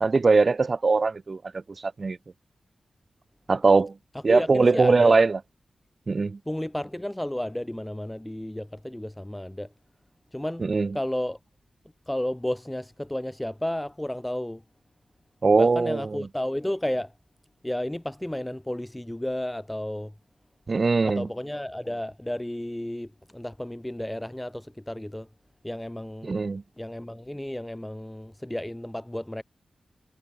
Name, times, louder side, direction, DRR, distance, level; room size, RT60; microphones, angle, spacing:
voice 1, 0.0-2.2 3.5-3.9 4.2-5.4 6.1-6.4 10.6-11.0 15.4-16.3 20.7-21.3 26.2-26.6, right 4 dB, 45° right, 0.5 m, -21 dB
voice 2, 4.3-5.2 6.5-9.7 10.3-10.7 10.9-11.4 12.1-14.6 15.6-17.1 17.6-20.1 21.0-25.3 25.6-26.4 26.8-29.4, left 1 dB, 10° left, 1.7 m, -32 dB
cardioid pair, 80°, 0 cm